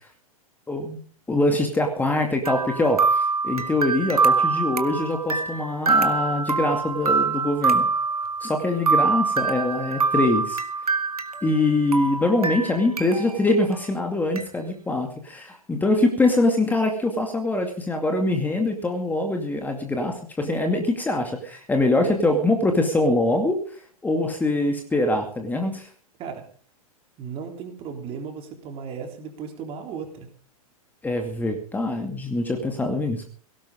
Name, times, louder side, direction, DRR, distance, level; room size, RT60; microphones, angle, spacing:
voice 1, 0.7-1.0 1.3-7.9 8.4-10.6 11.4-23.6 24.0-25.9 31.0-33.3, left 2 dB, 10° left, 3 dB, 2.3 m, -23 dB
sound 1, 2.5-11.7 11.9-13.4 13.7-13.8 14.4-14.5, right 4 dB, 80° right, 1.4 m, -24 dB
voice 2, 27.2-30.3, right 6 dB, 30° right, 4 dB, 3.5 m, -35 dB
17.5 x 16.5 x 3.8 m, 0.44 s
figure-of-eight pair, 100°, 19 cm